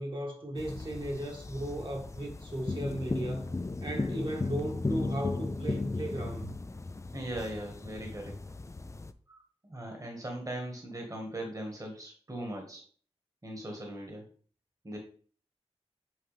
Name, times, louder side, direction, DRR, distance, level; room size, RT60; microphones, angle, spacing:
voice 1, 0.0-3.5 3.8-6.6, right 1 dB, 45° right, 1.6 m, -36 dB
sound 1, 0.6-9.1, left 3 dB, 25° left, 0.4 m, -36 dB
voice 2, 7.1-8.3 9.3-12.8 13.4-14.2 14.8-15.0, right 1 dB, 30° right, 1.6 m, -39 dB
7.9 x 4.6 x 3.4 m
wide cardioid pair, 90°, 11 cm